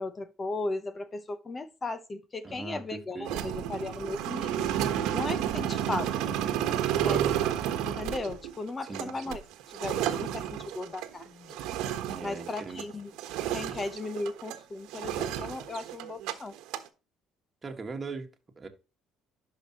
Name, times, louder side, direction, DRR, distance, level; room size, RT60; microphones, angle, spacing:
voice 1, 0.0-4.7 5.1-6.3 7.0-7.3 7.8-9.4 9.8-11.6 12.2-13.1 13.5-16.5, left 2 dB, 20° left, 0.8 m, -36 dB
voice 2, 2.4-3.3 8.9-9.4 12.1-12.9 17.6-18.3 18.6-18.7, right 4 dB, 25° right, 1.6 m, -40 dB
sound 1, 3.2-12.9 13.2-14.6 14.9-16.3 16.6-16.9, right 10 dB, 85° right, 1.3 m, -31 dB
11.5 x 5.1 x 3.0 m
cardioid pair, 135°, 0 cm